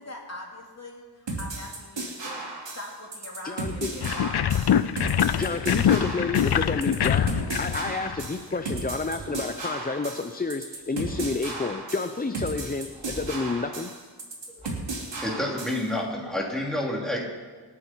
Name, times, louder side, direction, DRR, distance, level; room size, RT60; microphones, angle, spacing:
voice 1, 0.0-2.4 2.7-4.5, left 2 dB, 35° left, 0 dB, 2.9 m, -41 dB
sound 1, 1.3-15.9, right 2 dB, 85° right, 3.1 m, -35 dB
voice 2, 3.4-3.9 5.4-7.3 7.6-13.9, left 3 dB, 20° left, 8 dB, 0.6 m, -30 dB
sound 2, 4.0-8.6, left 9 dB, 65° left, 0.6 m, -24 dB
sound 3, 5.1-5.9 7.0-7.9 8.8-9.7 10.7-11.6 12.7-13.6 14.6-14.7, right 1 dB, 15° right, 5.2 m, -45 dB
voice 3, 15.2-17.3, left 1 dB, ahead, -3 dB, 3.5 m, -29 dB
26.0 x 9.7 x 4.7 m, 1.4 s
wide cardioid pair, 85°, 42 cm